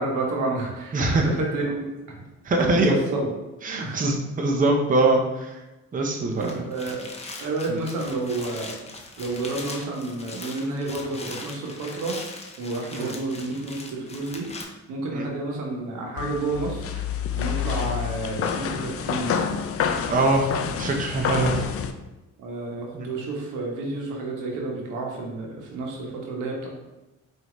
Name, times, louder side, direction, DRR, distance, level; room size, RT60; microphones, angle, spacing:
voice 1, 0.0-1.9 2.6-3.3 3.8-4.0 6.4-7.0 7.4-8.7 9.2-12.2 12.6-14.5 14.9-16.9 17.4-19.5 20.6-20.8 22.4-26.7, right 2 dB, 90° right, -1 dB, 1.0 m, -30 dB
voice 2, 0.9-1.4 2.4-2.9 3.6-5.6 5.9-6.6 12.9-13.1 15.1-15.2 20.1-20.5 20.8-21.6 22.9-23.1, right 2 dB, 25° right, 1 dB, 0.7 m, -23 dB
sound 1, 6.3-14.6, left 3 dB, 20° left, 0.7 m, -40 dB
sound 2, 16.2-21.9, left 8 dB, 50° left, 0.4 m, -28 dB
4.9 x 2.7 x 3.0 m, 1.0 s
cardioid pair, 90°, 30 cm